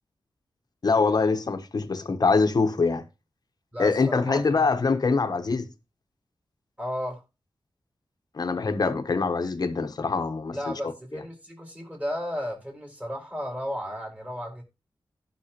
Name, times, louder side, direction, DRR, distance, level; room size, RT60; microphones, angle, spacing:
voice 1, 0.8-3.0 3.8-5.7 8.3-10.6, left 4 dB, 50° left, 1.1 m, -24 dB
voice 2, 3.7-4.7 6.8-7.2 10.5-14.6, equal, 15° right, 4.4 m, -34 dB
16.0 x 5.8 x 2.9 m
wide cardioid pair, 85°, 9 cm